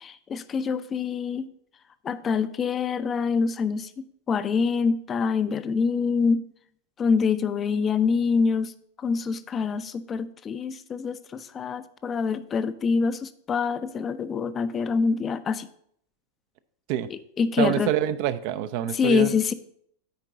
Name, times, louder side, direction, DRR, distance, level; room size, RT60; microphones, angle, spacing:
voice 1, 0.0-1.5 2.0-6.4 7.0-8.7 9.0-15.7 17.1-17.9 18.9-19.5, left 5 dB, 25° left, 13 dB, 0.4 m, -25 dB
voice 2, 17.6-19.4, right 11 dB, 45° right, 12 dB, 0.4 m, -26 dB
9.5 x 4.5 x 4.0 m, 0.67 s
figure-of-eight pair, 90°, 0 cm